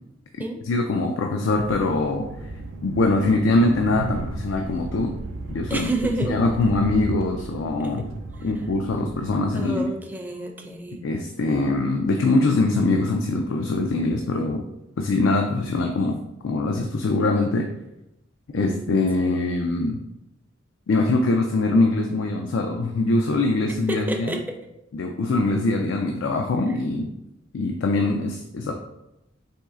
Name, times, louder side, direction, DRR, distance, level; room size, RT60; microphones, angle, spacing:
voice 1, 0.6-2.5 2.8-5.1 5.5-5.9 6.3-8.0 8.4-9.9 11.0-14.7 15.0-17.7 18.5-20.0 20.9-24.4 24.9-27.1 27.5-28.7, left 2 dB, 85° left, 3 dB, 0.4 m, -23 dB
Train, 1.5-9.4, right 2 dB, 80° right, 0.4 m, -35 dB
voice 2, 5.7-6.4 7.8-8.1 9.5-11.1 18.5-19.3 23.9-24.6 26.7-26.8, right 2 dB, 10° right, 2 dB, 0.5 m, -30 dB
4.3 x 3.0 x 3.5 m, 0.88 s
head